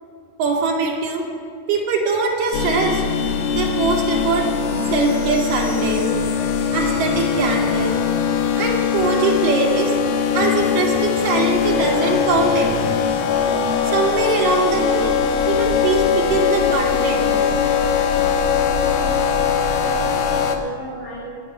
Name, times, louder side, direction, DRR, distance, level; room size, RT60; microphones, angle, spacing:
voice 1, 0.4-1.2 1.7-3.0 3.5-4.4 4.9-6.1 6.7-8.0 8.6-9.9 10.3-13.0 13.8-15.1 15.5-17.5 20.3-20.4, right 4 dB, 60° right, -2 dB, 3.6 m, -22 dB
sound 1, 2.5-20.6, left 7 dB, 70° left, 2.6 m, -21 dB
voice 2, 18.7-19.3 19.7-21.2, right 2 dB, 35° left, -9 dB, 4.5 m, -34 dB
23.5 x 8.9 x 5.4 m, 2.4 s
omnidirectional pair, 4.5 m